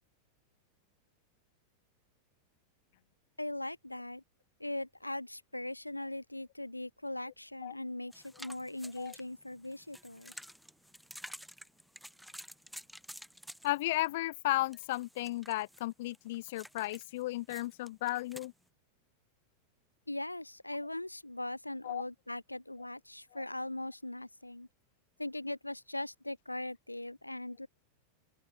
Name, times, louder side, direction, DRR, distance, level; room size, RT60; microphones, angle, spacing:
voice 1, 3.4-4.2 4.6-10.3 20.1-24.7 25.2-27.7, left 1 dB, 85° left, 1.1 m, -40 dB
sound 1, 8.1-14.1 14.7-18.5, equal, ahead, 5.9 m, -51 dB
voice 2, 13.6-18.5 21.8-22.0 23.3-23.4, left 17 dB, 55° left, 0.7 m, -34 dB
open air
figure-of-eight pair, 90°, 0 cm